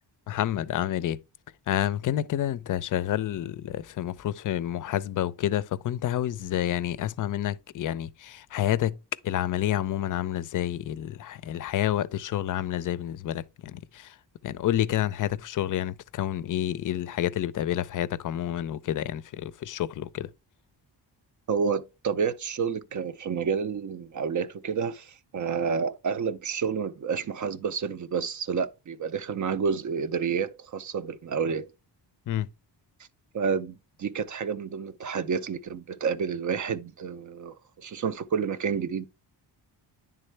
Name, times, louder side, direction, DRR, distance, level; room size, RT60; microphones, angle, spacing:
voice 1, 0.3-1.2 1.7-9.0 9.2-14.1 14.4-20.3 32.3-32.5, left 12 dB, 50° left, 0.4 m, -29 dB
voice 2, 21.5-31.7 33.3-39.1, right 6 dB, 45° right, 0.5 m, -29 dB
10.0 x 3.6 x 3.2 m
cardioid pair, 115°, 43 cm